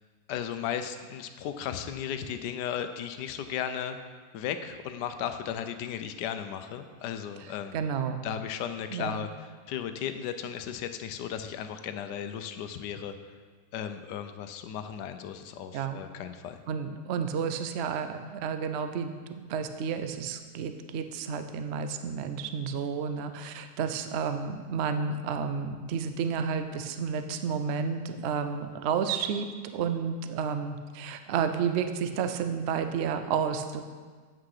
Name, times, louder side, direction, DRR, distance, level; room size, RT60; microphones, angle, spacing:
voice 1, 0.3-4.0 4.3-7.8 8.2-9.3 9.7-13.2 13.7-16.6, left 9 dB, 85° left, 9 dB, 1.2 m, -35 dB
voice 2, 7.7-8.2 8.9-9.3 15.7-16.0 16.7-33.8, right 6 dB, 85° right, 8 dB, 0.5 m, -31 dB
8.4 x 5.9 x 4.9 m, 1.5 s
omnidirectional pair, 1.8 m